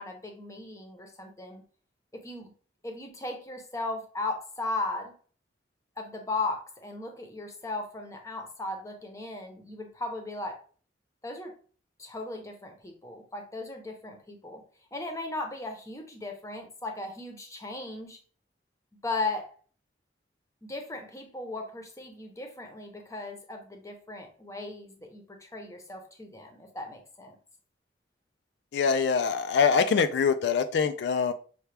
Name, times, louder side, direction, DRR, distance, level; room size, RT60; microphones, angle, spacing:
voice 1, 0.0-1.6 2.1-2.5 2.8-5.1 6.0-10.6 11.2-11.5 12.0-14.6 14.9-18.2 19.0-19.5 20.6-27.4, left 2 dB, 15° left, 0.7 m, -37 dB
voice 2, 28.7-31.3, left 6 dB, 65° left, 0.3 m, -24 dB
5.7 x 2.2 x 3.3 m
head